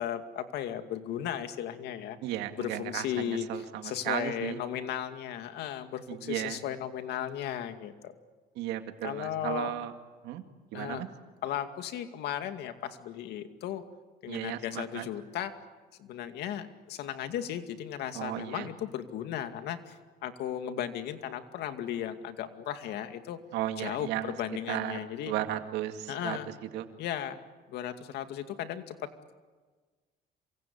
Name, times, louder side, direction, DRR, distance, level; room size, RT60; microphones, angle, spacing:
voice 1, 0.0-2.2 2.6-8.1 9.0-9.7 10.7-11.1 11.4-13.8 14.2-15.5 16.0-23.4 23.8-25.3 26.1-26.5 27.0-27.4 27.7-29.3, left 10 dB, 80° left, 8 dB, 2.3 m, -36 dB
voice 2, 2.2-4.6 6.1-6.6 8.6-9.9 10.2-10.4 10.7-11.1 14.3-15.1 18.1-18.7 23.5-24.3 24.7-26.4 26.7-26.9, right 13 dB, 90° right, 7 dB, 2.3 m, -35 dB
27.5 x 24.5 x 8.7 m, 1.4 s
cardioid pair, 110°, 17 cm